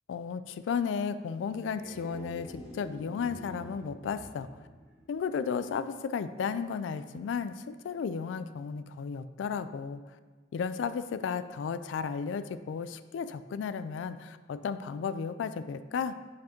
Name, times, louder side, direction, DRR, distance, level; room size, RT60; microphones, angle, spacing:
voice 1, 0.1-4.5 5.1-10.0 10.5-16.1, left 6 dB, 75° left, 12 dB, 0.3 m, -34 dB
sound 1, 1.6-5.6, equal, 35° right, 1.4 m, -48 dB
5.8 x 5.1 x 4.3 m, 1.3 s
head